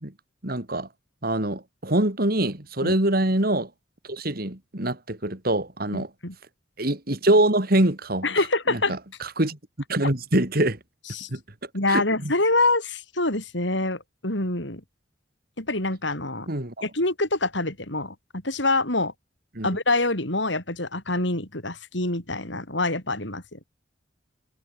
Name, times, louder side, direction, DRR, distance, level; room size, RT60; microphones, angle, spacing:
voice 1, 0.4-0.9 1.2-3.7 4.0-6.1 6.8-8.3 8.7-9.6 9.9-10.8 11.3-11.4 11.9-12.3 16.5-16.7 19.5-19.7, right 1 dB, 50° right, 3.0 m, -24 dB
voice 2, 5.9-6.3 8.2-8.9 11.1-11.3 11.7-14.8 15.6-16.5 16.8-19.1 19.6-23.6, left 2 dB, 70° left, 7.2 m, -26 dB
head